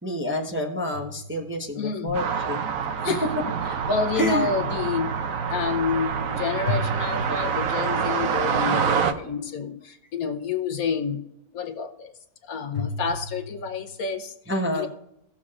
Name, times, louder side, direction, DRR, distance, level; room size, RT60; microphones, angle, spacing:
voice 1, 0.0-2.6 3.1-3.2 4.2-4.5 14.5-14.9, left 1 dB, 10° right, 1 dB, 0.8 m, -27 dB
sound 1, 0.9-2.1 6.7-8.2 12.7-13.9, left 3 dB, 50° left, 2.8 m, -34 dB
voice 2, 1.8-2.2 3.0-3.2 3.6-11.2 11.5-12.1 12.4-14.9, left 5 dB, 65° left, 6 dB, 1.1 m, -29 dB
sound 2, 2.1-9.1, right 6 dB, 60° right, 1.1 m, -26 dB
17.5 x 7.2 x 2.5 m, 0.78 s
omnidirectional pair, 1.7 m